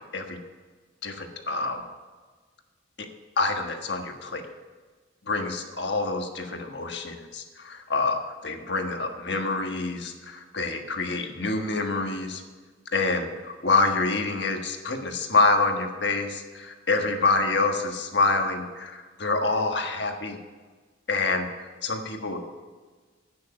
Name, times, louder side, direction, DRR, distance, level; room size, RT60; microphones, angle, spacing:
voice 1, 1.0-1.8 3.0-3.1 3.4-4.4 5.3-12.4 12.9-20.4 21.1-21.5 21.8-22.4, left 3 dB, 65° left, 4 dB, 1.4 m, -26 dB
11.0 x 9.4 x 5.5 m, 1.4 s
head